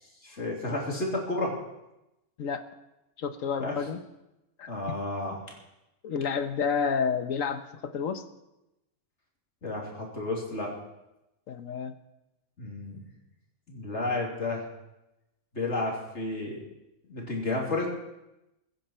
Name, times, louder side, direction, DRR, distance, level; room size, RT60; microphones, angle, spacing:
voice 1, 0.2-1.6 3.6-3.8 4.7-5.4 9.6-10.7 12.6-13.0 13.7-14.6 15.5-16.6 17.1-17.9, left 2 dB, 55° left, -2 dB, 3.3 m, -31 dB
voice 2, 3.2-4.0 4.6-4.7 6.0-8.2 11.5-11.9, left 6 dB, 75° left, 9 dB, 1.4 m, -30 dB
22.0 x 9.9 x 4.4 m, 0.94 s
omnidirectional pair, 1.4 m